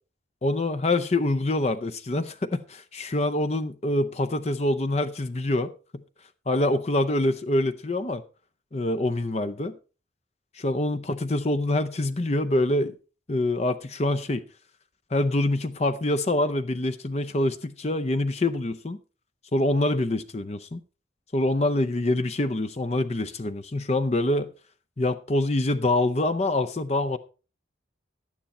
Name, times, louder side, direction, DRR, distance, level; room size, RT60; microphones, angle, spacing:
voice 1, 0.4-5.7 6.5-8.2 8.7-9.8 10.6-13.0 13.3-14.4 15.1-19.0 19.5-20.8 21.3-24.5 25.0-27.2, left 1 dB, 35° left, 0.6 m, -25 dB
11.5 x 9.4 x 4.2 m
head